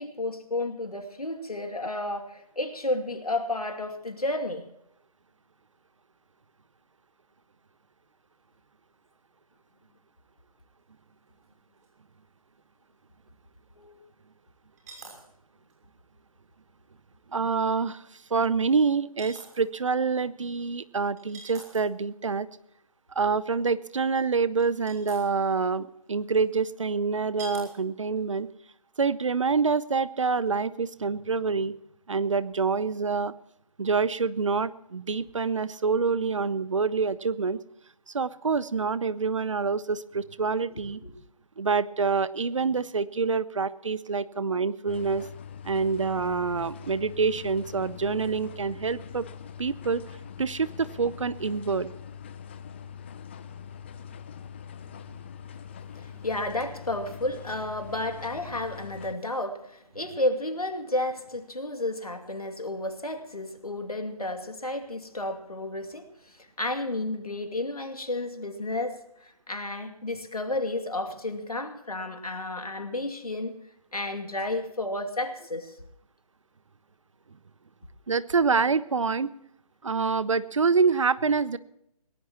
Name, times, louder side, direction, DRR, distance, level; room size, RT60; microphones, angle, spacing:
voice 1, 0.0-4.6 13.8-14.0 40.7-41.2 55.9-73.5 73.9-75.7 81.2-81.3, left 2 dB, 80° left, 6 dB, 2.6 m, -32 dB
sound 1, 11.4-11.5 11.8-11.9 14.8-15.3 15.7-15.8 17.5-17.7 19.2-19.6 21.2-22.0 24.2-24.3 24.6-25.2 26.3-26.4 27.4-27.7 28.2-28.4, right 3 dB, 30° right, 6.2 m, -44 dB
voice 2, 17.3-18.0 18.3-22.5 23.1-28.5 29.0-31.7 32.1-33.3 33.8-37.6 38.1-41.0 41.6-45.2 45.6-49.2 49.6-50.0 50.4-51.9 78.1-79.3 79.8-81.6, right 5 dB, 55° right, 17 dB, 0.9 m, -26 dB
sound 2, 44.9-59.2, left 7 dB, 20° left, 0.6 m, -43 dB
21.5 x 18.5 x 3.0 m, 0.78 s
figure-of-eight pair, 145°, 19 cm